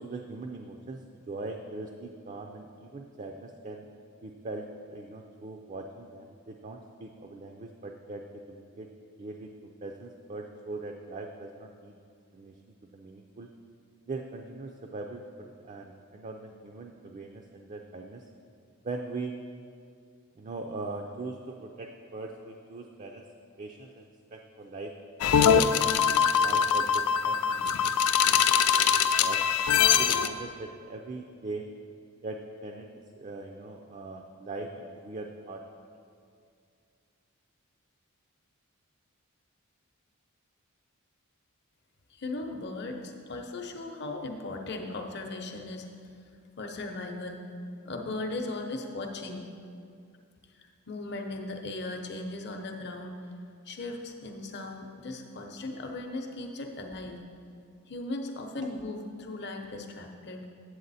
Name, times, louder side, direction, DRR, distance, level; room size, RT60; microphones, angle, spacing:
voice 1, 0.0-3.9 4.2-8.9 9.2-9.5 9.8-12.0 12.3-12.6 12.9-13.5 14.1-18.3 18.8-19.4 20.4-23.2 23.6-24.9 25.5-29.4 30.0-31.7 32.2-35.6, right 3 dB, 35° right, 3 dB, 0.4 m, -40 dB
sound 1, 25.2-30.3, left 8 dB, 90° left, 0.4 m, -23 dB
voice 2, 42.1-45.9 46.6-47.4 47.8-49.4 50.6-53.2 53.6-57.2 57.9-60.5, left 2 dB, 50° left, 3 dB, 0.7 m, -37 dB
8.1 x 7.9 x 4.1 m, 2.4 s
head